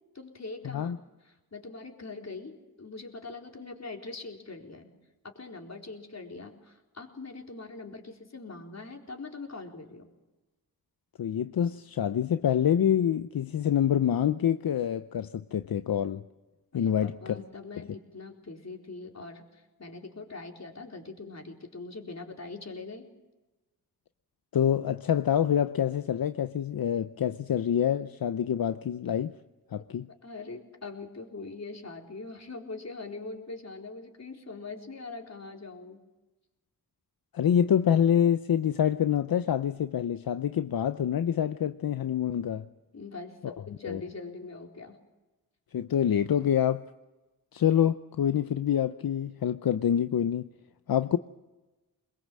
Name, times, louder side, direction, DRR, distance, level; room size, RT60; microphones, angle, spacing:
voice 1, 0.1-0.9 1.2-4.9 5.2-10.1 16.7-23.1 29.7-29.8 30.2-36.0 42.9-45.0, left 3 dB, 45° left, 4.2 m, -42 dB
voice 2, 0.6-1.0 11.2-16.2 16.7-17.4 24.5-29.3 29.7-30.1 37.3-42.7 43.4-43.6 43.8-44.0 45.7-46.8 47.5-50.5 50.9-51.2, left 9 dB, 75° left, 0.7 m, -26 dB
23.0 x 21.5 x 7.5 m
cardioid pair, 60°, 36 cm